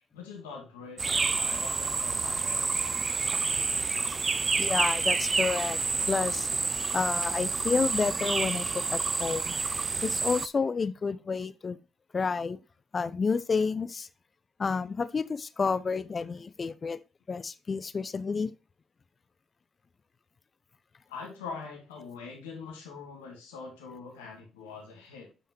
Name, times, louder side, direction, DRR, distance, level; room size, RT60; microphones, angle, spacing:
voice 1, 0.1-2.8 3.2-3.3 21.1-25.3, left 5 dB, 90° left, 1.9 m, -43 dB
sound 1, 1.0-10.5, right 4 dB, 35° right, 0.4 m, -29 dB
voice 2, 4.6-5.8 6.1-6.5 6.9-9.5 10.0-11.8 12.1-12.6 12.9-14.1 14.6-17.0 17.3-18.5, left 5 dB, 40° left, 0.6 m, -30 dB
8.4 x 5.6 x 3.0 m
hypercardioid pair, 45°, 0 cm